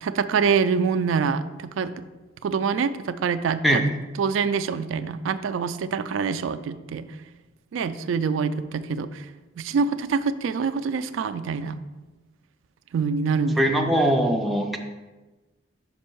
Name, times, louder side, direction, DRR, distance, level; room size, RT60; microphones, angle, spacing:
voice 1, 0.0-1.9 2.4-3.9 4.2-7.1 7.7-9.3 9.6-11.8 12.9-13.9, right 5 dB, 80° right, 11 dB, 0.3 m, -25 dB
voice 2, 13.6-14.8, equal, ahead, 1 dB, 0.5 m, -21 dB
5.4 x 5.1 x 4.5 m, 1.2 s
head